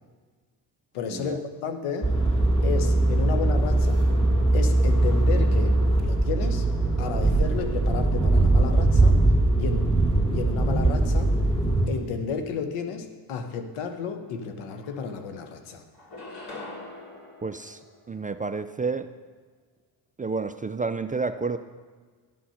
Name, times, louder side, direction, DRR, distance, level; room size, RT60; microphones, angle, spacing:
voice 1, 0.9-2.1 2.6-4.1 4.5-6.7 7.0-9.2 9.6-9.9 10.3-11.4 11.9-15.8, left 6 dB, 90° left, 7 dB, 1.0 m, -32 dB
sound 1, 2.0-11.9, right 2 dB, 10° left, 2.6 m, -21 dB
sound 2, 14.3-14.4 14.7-15.5 15.9-18.5, left 2 dB, 45° left, 3.2 m, -43 dB
voice 2, 17.4-17.8 18.1-19.1 20.2-21.6, right 4 dB, 20° right, 10 dB, 0.3 m, -30 dB
11.0 x 6.2 x 5.7 m, 1.5 s
supercardioid pair, 65°, 48 cm